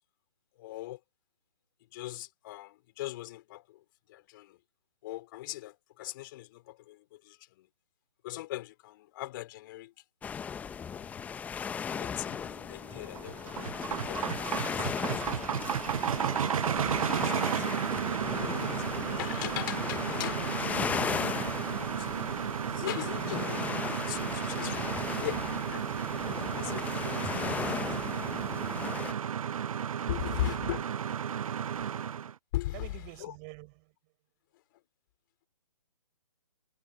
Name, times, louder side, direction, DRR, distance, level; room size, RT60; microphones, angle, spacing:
voice 1, 0.6-1.0 1.9-3.8 4.1-4.6 5.0-7.7 8.2-9.9 10.9-11.5 11.9-13.7 14.0-14.3 14.7-15.1 15.4-16.8 17.1-17.7 18.2-21.0 21.8-22.1 22.3-24.8 25.1-27.3 30.1-30.8 32.5-33.3, left 17 dB, 35° left, 3.6 m, -40 dB
sound 1, 10.2-29.1, left 7 dB, 10° left, 0.9 m, -37 dB
sound 2, 11.8-20.0, left 7 dB, 60° left, 5.8 m, -57 dB
sound 3, 12.9-32.3, right 8 dB, 65° right, 0.5 m, -33 dB
voice 2, 30.2-30.9 31.5-31.6 32.7-33.9, right 34 dB, 25° right, 7.1 m, -48 dB
figure-of-eight pair, 140°, 19 cm